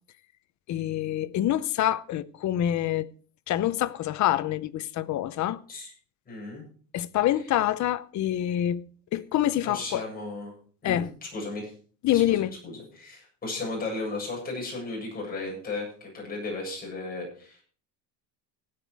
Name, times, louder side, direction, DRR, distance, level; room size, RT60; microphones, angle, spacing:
voice 1, 0.7-3.1 3.5-5.6 6.9-8.9 9.1-10.0 10.8-11.1 12.0-12.5, left 12 dB, 40° left, 0.7 m, -26 dB
voice 2, 6.3-6.6 9.6-10.5 10.8-11.0 11.3-11.7 12.1-17.6, left 3 dB, 20° left, 7.8 m, -35 dB
16.5 x 9.3 x 4.7 m
cardioid pair, 155°, 46 cm